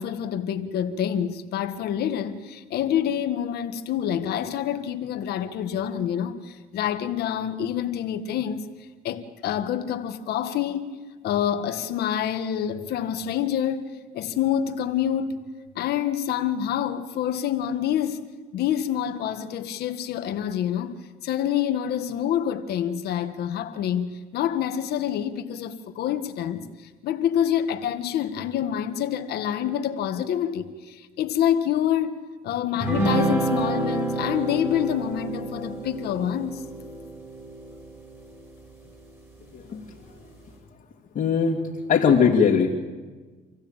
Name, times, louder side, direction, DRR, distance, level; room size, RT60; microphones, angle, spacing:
voice 1, 0.0-8.7 9.0-11.0 11.2-15.3 15.7-18.2 18.5-26.6 27.0-32.2 32.4-36.6, left 10 dB, 70° left, 1.6 m, -27 dB
sound 1, 32.8-38.5, right 2 dB, 15° right, 5.4 m, -28 dB
voice 2, 41.2-41.6 41.9-42.7, left 6 dB, 50° left, 2.2 m, -19 dB
26.5 x 15.5 x 8.9 m
cardioid pair, 110°, 17 cm